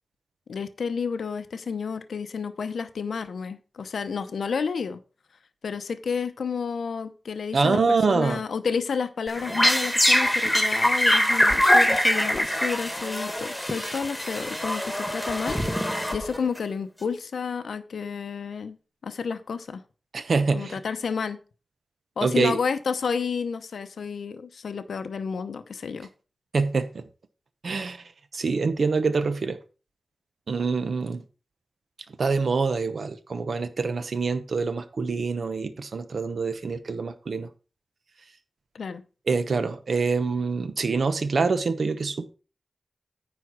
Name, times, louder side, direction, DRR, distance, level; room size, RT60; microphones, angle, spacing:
voice 1, 0.5-5.0 5.6-18.8 19.0-19.8 20.5-21.4 22.2-26.1 38.7-39.0, left 5 dB, 80° left, 0.7 m, -31 dB
voice 2, 7.5-8.4 20.1-20.8 22.2-22.6 26.5-27.0 27.6-29.6 30.5-31.2 32.2-37.5 39.3-42.3, right 4 dB, 60° right, 1.0 m, -25 dB
sound 1, 9.3-16.6, equal, 5° left, 1.7 m, -23 dB
9.5 x 4.4 x 6.0 m
wide cardioid pair, 105°, 0 cm